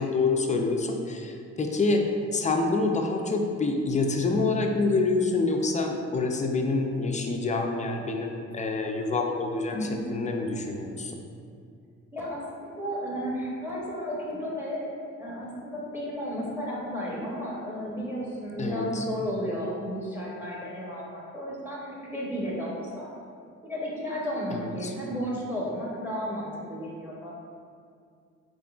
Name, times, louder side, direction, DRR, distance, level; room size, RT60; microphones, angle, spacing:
voice 1, 0.0-11.2 18.6-19.1 24.5-24.9, left 3 dB, 25° left, 3 dB, 0.3 m, -27 dB
voice 2, 9.7-10.1 12.1-14.9 15.2-23.1 23.6-27.3, equal, 5° right, -5 dB, 0.8 m, -33 dB
3.6 x 3.6 x 2.3 m, 2.3 s
cardioid pair, 90°, 30 cm